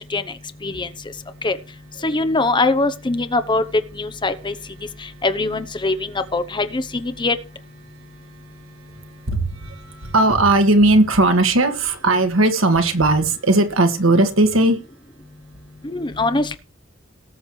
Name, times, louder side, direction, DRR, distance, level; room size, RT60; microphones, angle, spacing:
voice 1, 2.0-3.6 4.0-4.5 5.2-6.0 6.3-7.3 15.8-16.6, left 2 dB, 25° left, 11 dB, 0.9 m, -21 dB
voice 2, 9.3-14.8, right 2 dB, 85° right, 7 dB, 1.7 m, -17 dB
18.5 x 7.2 x 3.2 m, 0.33 s
head